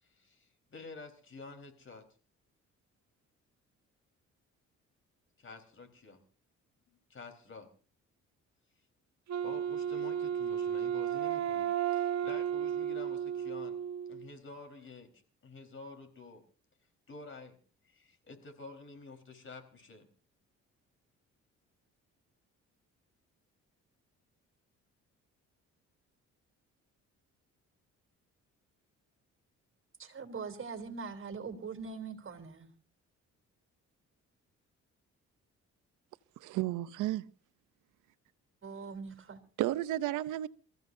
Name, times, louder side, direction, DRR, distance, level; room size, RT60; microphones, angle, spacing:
voice 1, 0.0-2.1 5.4-6.2 7.1-7.7 9.4-13.8 14.1-16.4 17.1-17.6 17.8-20.1, left 3 dB, 40° left, 4.4 m, -50 dB
Wind instrument woodwind instrument, 9.3-14.3, right 9 dB, 65° right, 1.4 m, -33 dB
voice 2, 30.0-32.7 38.6-39.4, right 5 dB, 40° right, 3.2 m, -42 dB
voice 3, 36.4-37.3 39.6-40.5, right 14 dB, 90° right, 0.8 m, -32 dB
28.0 x 15.0 x 2.7 m
cardioid pair, 90°, 30 cm